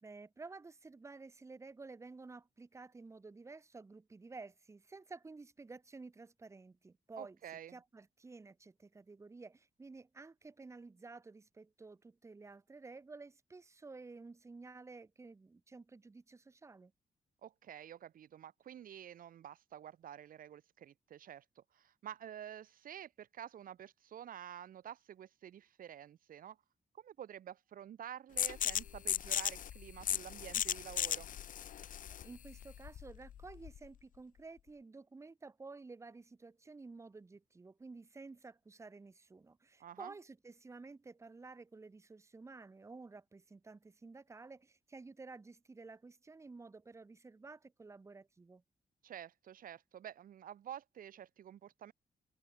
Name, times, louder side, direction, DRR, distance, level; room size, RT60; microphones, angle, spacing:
voice 1, 0.0-7.4 7.7-16.9 32.2-48.6, right 3 dB, 20° right, 2.2 m, -52 dB
voice 2, 7.2-7.8 17.4-26.6 26.9-31.3 39.8-40.1 49.0-51.9, right 10 dB, 75° right, 2.3 m, -50 dB
sound 1, 28.4-33.9, left 10 dB, 65° left, 1.2 m, -37 dB
wide cardioid pair, 180°, 15 cm